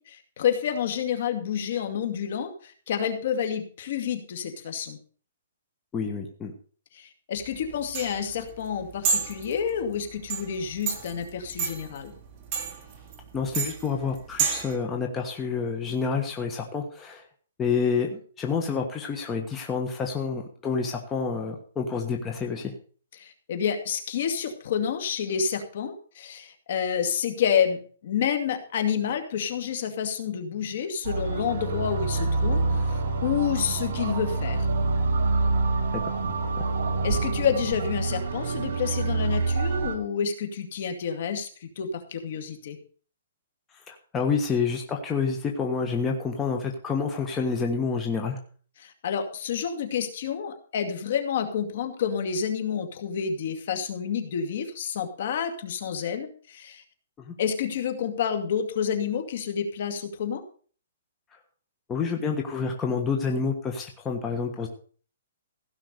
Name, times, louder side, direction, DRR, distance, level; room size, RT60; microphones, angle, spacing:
voice 1, 0.0-5.0 6.9-12.1 23.2-34.7 37.0-42.8 48.8-56.8 57.4-60.4, left 7 dB, 55° left, 7 dB, 2.3 m, -29 dB
voice 2, 5.9-6.5 13.3-17.2 17.6-22.7 36.0-36.2 43.9-48.4 57.2-57.3 61.9-64.7, left 5 dB, 15° left, 2 dB, 1.4 m, -28 dB
sound 1, 7.4-14.8, right 6 dB, 25° right, 2.6 m, -31 dB
sound 2, 31.0-40.0, right 3 dB, 60° right, 2.7 m, -26 dB
16.0 x 5.9 x 6.7 m, 0.43 s
hypercardioid pair, 160°, 0 cm